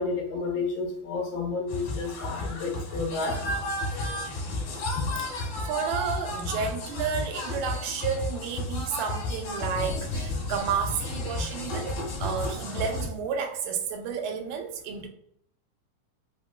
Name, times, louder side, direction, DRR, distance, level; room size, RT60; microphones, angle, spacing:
voice 1, 0.0-3.4 5.0-5.3 12.3-12.5, left 4 dB, 85° left, -1 dB, 2.3 m, -31 dB
sound 1, 1.7-13.1, left 2 dB, 60° left, 2.2 m, -32 dB
voice 2, 5.3-15.1, right 6 dB, 80° right, 3 dB, 2.0 m, -31 dB
5.7 x 2.1 x 2.2 m, 0.65 s
omnidirectional pair, 4.0 m